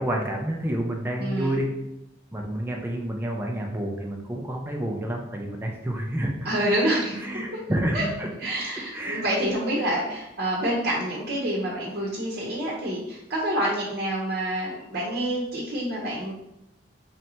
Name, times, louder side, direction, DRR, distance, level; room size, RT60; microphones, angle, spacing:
voice 1, 0.0-1.8 2.3-6.3 7.1-8.3 8.9-9.3, right 1 dB, 10° right, 0 dB, 0.4 m, -29 dB
voice 2, 1.2-1.6 6.4-7.1 7.9-8.1 8.4-16.3, right 1 dB, 55° right, -4 dB, 0.8 m, -27 dB
3.2 x 2.7 x 4.2 m, 0.86 s
head